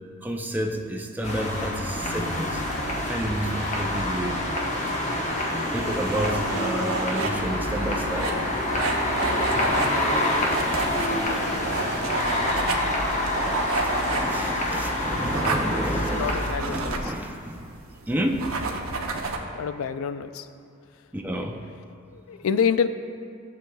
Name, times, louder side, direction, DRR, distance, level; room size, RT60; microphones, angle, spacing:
voice 1, 0.2-2.6 3.0-4.4 5.7-8.4 10.8-10.9 11.7-12.2 13.5-18.5 21.1-21.6, right 1 dB, 10° right, 2 dB, 0.5 m, -30 dB
sound 1, 1.2-16.5, left 1 dB, 35° left, 1.0 m, -27 dB
sound 2, 4.5-16.8, left 2 dB, 55° left, 1.1 m, -40 dB
sound 3, 5.8-19.4, right 3 dB, 85° right, 0.8 m, -31 dB
voice 2, 13.9-15.3 15.5-15.8 16.1-17.1 19.5-20.5 21.4-21.5 22.1-22.9, left 6 dB, 85° left, 11 dB, 0.4 m, -29 dB
14.5 x 7.0 x 2.3 m, 2.4 s
head